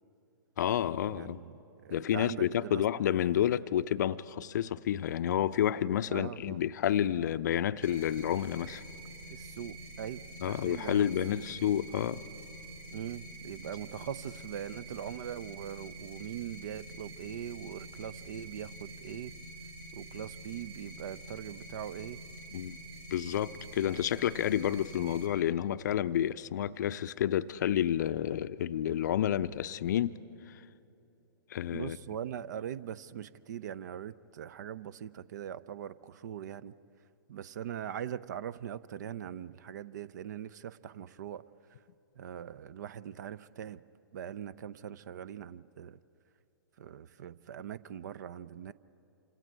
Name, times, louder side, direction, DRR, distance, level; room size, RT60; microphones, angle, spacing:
voice 1, 0.6-1.4 1.9-8.8 10.4-12.2 22.5-22.8 23.1-30.1 31.5-32.0, left 10 dB, 50° left, 0.5 m, -30 dB
voice 2, 1.1-2.8 6.1-6.6 9.3-11.4 12.9-19.3 19.9-22.2 31.7-36.7 37.3-41.4 42.2-43.8 44.1-46.0 46.8-48.7, right 9 dB, 50° right, 0.5 m, -41 dB
sound 1, 7.8-25.3, right 1 dB, 85° right, 2.6 m, -47 dB
27.5 x 26.0 x 4.7 m
figure-of-eight pair, 115°, 12 cm